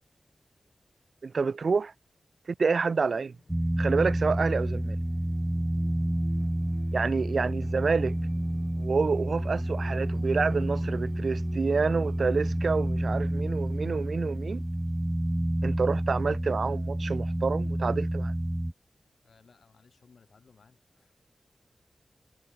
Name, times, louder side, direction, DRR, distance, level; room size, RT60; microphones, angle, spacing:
voice 1, 1.2-1.9 2.6-3.3 3.8-5.0 6.9-8.1 8.8-14.6 15.6-18.3, right 4 dB, 65° right, 0.7 m, -28 dB
sound 1, 2.9-16.3, left 3 dB, 40° left, 4.9 m, -54 dB
sound 2, 3.5-18.7, right 1 dB, 10° right, 0.4 m, -29 dB
voice 2, 19.2-21.1, left 5 dB, 70° left, 6.3 m, -60 dB
wide cardioid pair, 115°, 0 cm